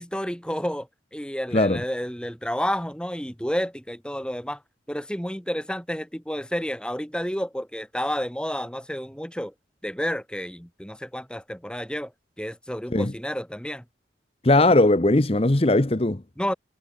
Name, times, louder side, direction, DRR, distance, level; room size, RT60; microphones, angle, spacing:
voice 1, 0.0-4.6 4.9-9.5 9.8-12.1 12.4-13.8 16.4-16.5, equal, 5° left, 4.5 m, -30 dB
voice 2, 14.4-16.2, left 2 dB, 30° left, 0.9 m, -19 dB
head